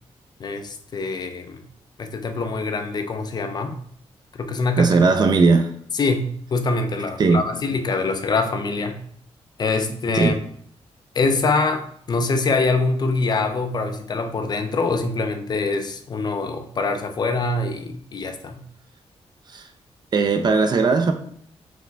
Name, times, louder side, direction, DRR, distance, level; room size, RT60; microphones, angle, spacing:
voice 1, 0.4-1.6 2.0-3.8 4.3-4.9 5.9-9.0 9.6-10.3 11.1-11.8 12.1-18.6, left 3 dB, 40° left, 0.5 m, -24 dB
voice 2, 4.8-5.7 7.2-7.4 10.1-10.4 19.5-19.7 20.1-21.1, right 4 dB, 40° right, 0.4 m, -18 dB
4.9 x 3.3 x 3.3 m
wide cardioid pair, 175°, 11 cm